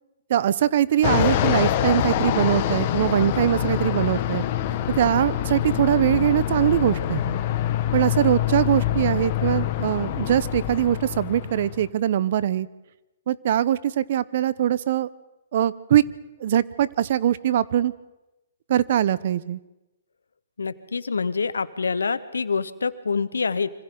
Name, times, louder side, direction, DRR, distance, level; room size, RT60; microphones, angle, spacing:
voice 1, 0.3-4.4 4.9-7.3 7.9-12.7 13.3-15.1 15.5-16.0 16.4-17.9 18.7-19.6, right 11 dB, 55° right, 18 dB, 0.8 m, -22 dB
Fixed-wing aircraft airplane, 1.0-11.9, left 11 dB, 45° left, 1.5 m, -25 dB
voice 2, 20.6-23.7, left 5 dB, 85° left, 15 dB, 1.0 m, -26 dB
26.0 x 25.5 x 3.9 m, 0.98 s
hypercardioid pair, 130°, 0 cm